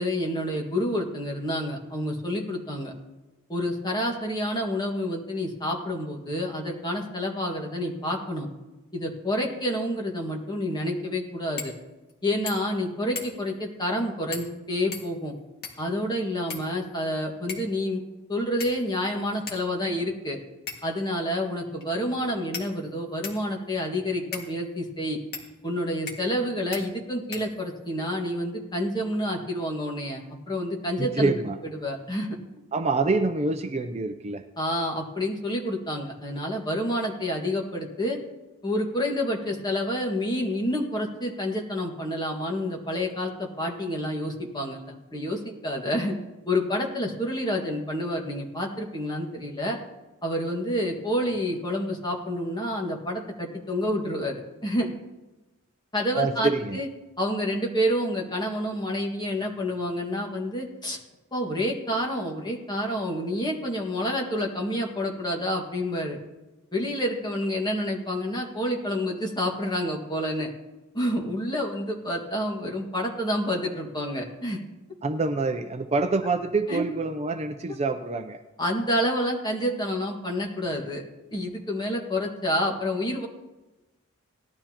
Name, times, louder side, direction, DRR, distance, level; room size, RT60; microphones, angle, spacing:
voice 1, 0.0-2.9 3.5-8.5 8.9-11.7 12.2-15.3 15.8-18.0 18.3-20.4 20.8-25.2 25.6-31.3 31.8-32.4 34.6-38.2 38.6-46.2 46.5-49.8 50.2-54.9 55.9-56.9 57.2-61.0 61.3-66.2 66.7-70.5 70.9-74.6 76.7-76.8 78.6-81.0 81.3-83.3, equal, 20° left, 0 dB, 1.7 m, -28 dB
sound 1, 11.6-11.8 12.1-12.2 12.5-12.8 13.2-13.5 14.3-14.6 14.9-15.9 16.5-17.1 17.5-17.8 18.6-19.0 19.5-19.6 20.7-21.0 21.8-21.9 22.5-23.5 24.3-24.5 25.3-25.5 26.1-26.4 26.7-26.8 27.3-27.9, left 5 dB, 50° left, 1.9 m, -38 dB
voice 2, 31.0-31.6 32.7-34.4 56.1-56.8 75.0-78.4, right 3 dB, 30° right, 8 dB, 0.5 m, -26 dB
18.0 x 12.0 x 2.9 m, 1.1 s
head